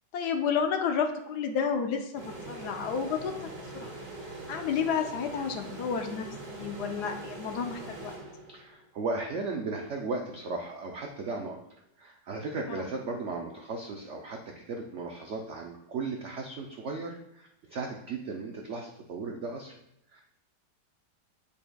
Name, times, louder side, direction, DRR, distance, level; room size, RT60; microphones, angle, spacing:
voice 1, 0.1-3.3 3.7-4.0 4.5-8.1 12.7-12.8, left 6 dB, 70° left, 5 dB, 1.1 m, -31 dB
sound 1, 2.2-8.8, right 2 dB, 35° right, 2.0 m, -42 dB
voice 2, 8.5-11.6 12.0-19.7 20.1-20.2, right 3 dB, 75° right, 1 dB, 0.6 m, -36 dB
8.8 x 5.2 x 2.2 m, 0.82 s
omnidirectional pair, 1.9 m